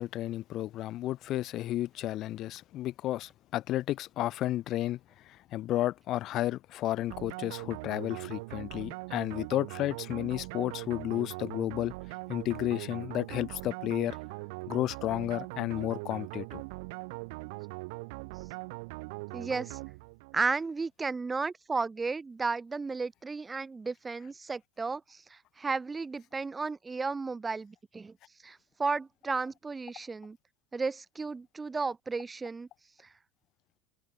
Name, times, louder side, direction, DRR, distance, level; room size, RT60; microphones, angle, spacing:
voice 1, 0.0-11.9 12.3-14.2 14.7-16.6, left 14 dB, 45° left, 0.7 m, -32 dB
sound 1, 7.1-20.4, right 27 dB, 70° right, 1.7 m, -41 dB
voice 2, 19.3-19.8 20.3-28.1 28.4-30.4 30.7-32.7, right 4 dB, 15° right, 1.2 m, -34 dB
supercardioid pair, 120°, 0 cm